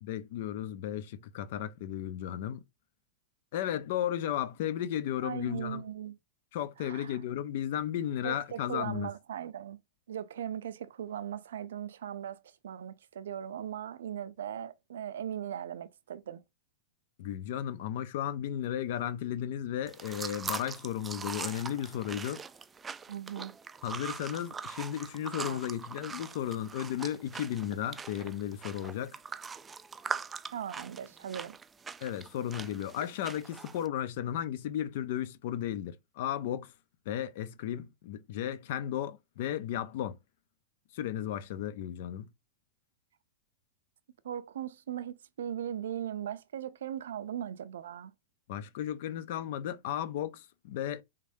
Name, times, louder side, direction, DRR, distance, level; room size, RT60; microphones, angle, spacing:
voice 1, 0.0-2.6 3.5-5.8 6.5-9.1 17.2-22.4 23.8-29.2 32.0-36.7 37.1-40.2 40.9-42.3 48.5-51.0, left 11 dB, 65° left, 0.6 m, -34 dB
voice 2, 5.2-6.2 6.8-7.2 8.2-9.8 10.1-16.4 23.1-23.5 25.4-25.6 30.5-31.6 44.2-48.1, right 10 dB, 80° right, 0.4 m, -39 dB
sound 1, 19.9-33.9, right 5 dB, 20° right, 0.3 m, -42 dB
3.7 x 3.3 x 2.7 m
hypercardioid pair, 115°, 0 cm